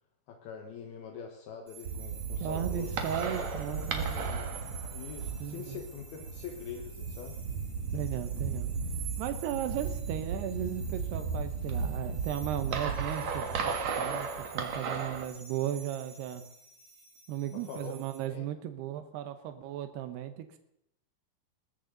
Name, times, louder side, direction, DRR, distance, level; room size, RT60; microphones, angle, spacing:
voice 1, 0.3-4.5 4.9-7.4 17.5-17.9 18.3-18.5, left 6 dB, 75° left, 3 dB, 3.1 m, -44 dB
sound 1, 1.7-18.2, right 4 dB, 20° right, 2.8 m, -50 dB
sound 2, 1.8-15.2, right 5 dB, 55° right, 2.4 m, -35 dB
voice 2, 2.4-4.1 5.4-5.8 7.9-8.7 9.2-16.4 17.3-20.6, right 11 dB, 90° right, 9 dB, 3.0 m, -36 dB
20.5 x 15.5 x 3.9 m, 0.78 s
omnidirectional pair, 4.6 m